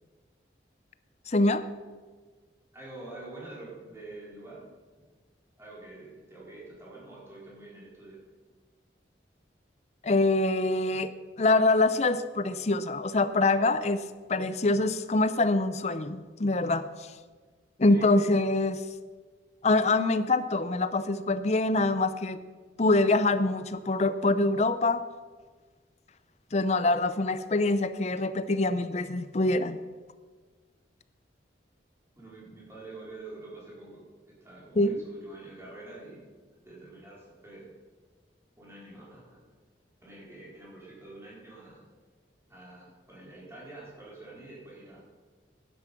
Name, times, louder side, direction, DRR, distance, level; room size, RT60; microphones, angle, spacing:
voice 1, 1.3-1.6 10.0-14.0 14.3-17.1 17.8-18.8 19.6-22.4 22.8-25.0 26.5-29.8 34.8-35.0, left 2 dB, 40° left, 13 dB, 0.6 m, -25 dB
voice 2, 2.7-4.7 5.0-5.1 5.6-8.2 17.9-18.2 32.1-36.3 36.6-37.7 38.6-39.5 40.0-41.9 42.5-45.0, right 2 dB, 15° right, -7 dB, 4.6 m, -46 dB
11.5 x 10.5 x 5.9 m, 1.4 s
head